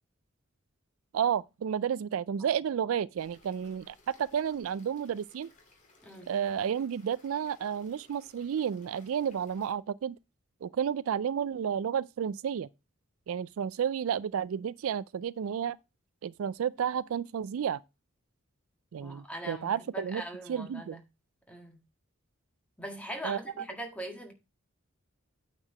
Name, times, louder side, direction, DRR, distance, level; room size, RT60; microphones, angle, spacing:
voice 1, 1.1-5.5 6.3-10.2 10.6-12.7 13.3-15.8 16.2-17.8 18.9-20.2 20.5-21.0 23.2-23.6, right 8 dB, 80° right, 0.4 m, -31 dB
sound 1, 3.2-9.7, left 2 dB, 40° left, 2.5 m, -62 dB
voice 2, 19.0-21.0 21.5-21.8 22.8-24.3, equal, 5° left, 1.8 m, -41 dB
8.8 x 4.6 x 4.9 m
head